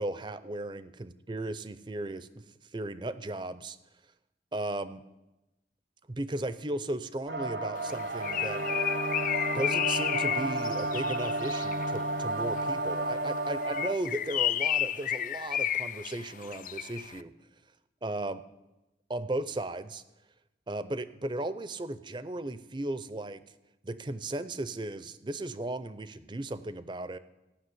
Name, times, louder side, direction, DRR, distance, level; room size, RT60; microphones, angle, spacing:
voice 1, 0.0-2.4 2.7-3.8 4.5-5.0 6.1-8.6 9.5-17.3 18.0-18.4 19.1-20.0 20.7-23.4 23.8-27.2, right 1 dB, 25° right, 14 dB, 0.5 m, -36 dB
sound 1, 7.3-13.9, right 2 dB, 65° right, 0.8 m, -32 dB
Bird, 7.9-12.0 13.6-17.1, left 11 dB, 45° left, 0.4 m, -32 dB
14.5 x 6.4 x 9.6 m, 0.99 s
head